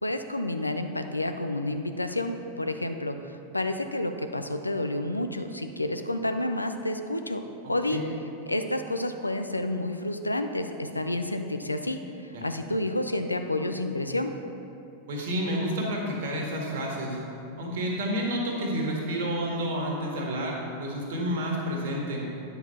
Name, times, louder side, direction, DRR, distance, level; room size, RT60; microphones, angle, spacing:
voice 1, 0.0-7.4 7.7-8.0 8.5-14.3, left 1 dB, 85° left, 7 dB, 0.4 m, -30 dB
voice 2, 15.1-17.2 17.6-22.2, equal, 55° right, -1 dB, 1.6 m, -30 dB
9.1 x 5.8 x 4.2 m, 2.7 s
figure-of-eight pair, 90°, 0 cm